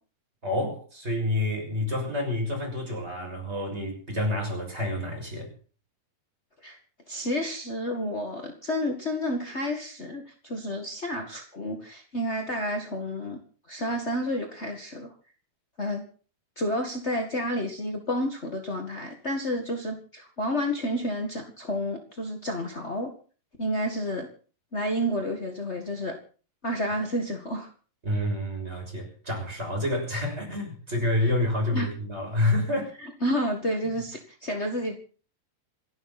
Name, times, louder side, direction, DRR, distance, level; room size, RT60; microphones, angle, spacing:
voice 1, 0.4-5.5 28.0-32.9, left 1 dB, 15° right, 1 dB, 6.5 m, -28 dB
voice 2, 7.1-13.4 13.7-15.1 15.8-16.0 16.6-23.1 23.6-24.3 24.7-26.2 26.6-27.7 31.7-31.9 33.0-35.0, equal, 40° left, 3 dB, 0.9 m, -30 dB
27.5 x 11.5 x 4.2 m, 0.40 s
omnidirectional pair, 4.6 m